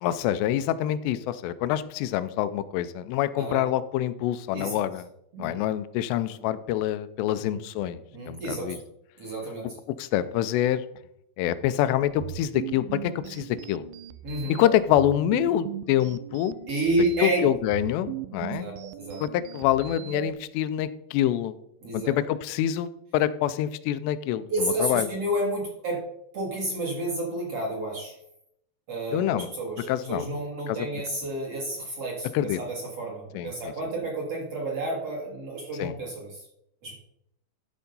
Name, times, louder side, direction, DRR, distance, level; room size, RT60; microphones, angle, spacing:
voice 1, 0.0-5.1 5.4-8.0 8.3-8.8 10.0-10.8 11.4-13.8 14.5-16.6 17.2-18.7 19.2-21.6 21.9-25.1 29.1-29.5 29.9-30.3 30.7-30.9 32.3-32.6 33.3-33.5 35.8-35.9, left 12 dB, 90° left, 13 dB, 2.8 m, -26 dB
voice 2, 4.5-4.8 5.3-5.6 7.4-7.6 8.1-8.8 9.2-9.7 14.2-14.6 16.7-17.4 18.6-19.2 21.8-22.1 24.5-26.0 26.3-28.1 28.9-36.4 36.8-36.9, right 1 dB, 50° right, -2 dB, 2.1 m, -30 dB
sound 1, 12.0-20.3, right 14 dB, 85° right, 2.5 m, -38 dB
12.5 x 4.7 x 5.3 m, 0.76 s
omnidirectional pair, 4.8 m